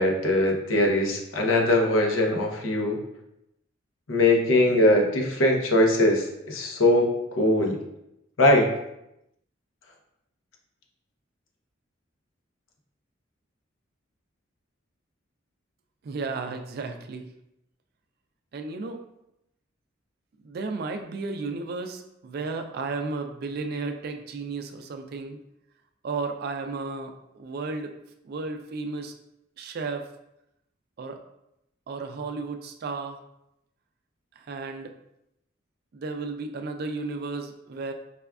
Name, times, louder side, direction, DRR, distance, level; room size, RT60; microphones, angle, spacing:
voice 1, 0.0-3.0 4.1-7.8 8.4-8.7, left 1 dB, 85° left, 1 dB, 0.7 m, -21 dB
voice 2, 16.0-17.3 18.5-19.0 20.4-25.4 26.0-28.0 28.2-29.1 29.6-30.1 31.0-31.2 31.9-33.2 34.4-34.9 35.9-37.9, right 3 dB, 50° right, 6 dB, 0.3 m, -33 dB
4.9 x 2.3 x 2.3 m, 0.84 s
head